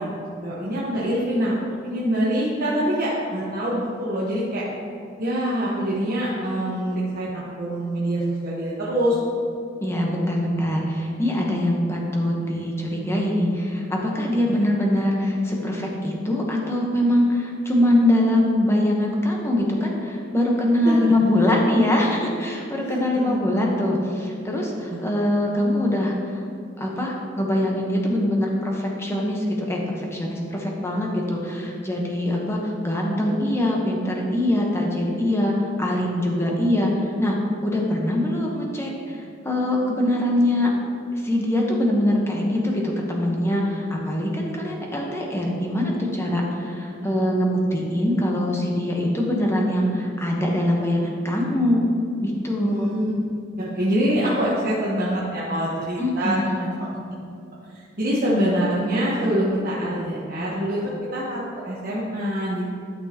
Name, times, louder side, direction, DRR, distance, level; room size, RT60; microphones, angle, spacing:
voice 1, 0.0-1.5 1.8-4.6 5.2-9.2 14.5-14.7 20.8-21.1 22.8-23.4 24.9-25.0 42.7-42.8 47.0-47.1 52.6-53.1 53.7-56.9 57.7-62.7, equal, 50° right, -7 dB, 1.2 m, -25 dB
voice 2, 9.8-26.4 26.8-37.4 37.6-40.7 41.2-51.8 52.2-52.9 56.0-56.6, left 1 dB, 15° left, -1 dB, 1.1 m, -23 dB
12.0 x 6.1 x 3.0 m, 2.5 s
head